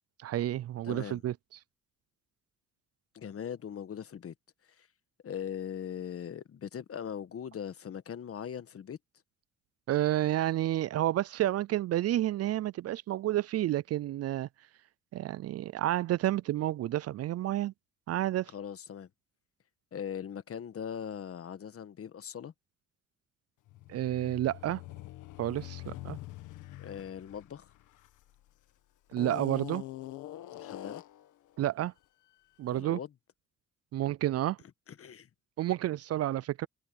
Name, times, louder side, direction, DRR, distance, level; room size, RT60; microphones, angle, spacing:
voice 1, 0.2-1.3 9.9-14.5 15.1-17.7 18.1-18.5 23.9-24.8 25.4-26.2 29.1-29.8 31.6-31.9 32.6-33.0 33.9-34.6 35.6-36.7, right 13 dB, 55° right, 0.4 m, -30 dB
voice 2, 0.8-1.2 3.1-4.3 4.8-4.9 5.2-9.0 18.5-19.1 19.9-22.5 26.8-27.7 30.5-31.0 32.7-33.1 34.9-35.3, left 8 dB, 50° left, 1.4 m, -40 dB
sound 1, 23.7-28.5 29.1-31.3, left 15 dB, 90° left, 1.8 m, -44 dB
cardioid pair, 90°, 30 cm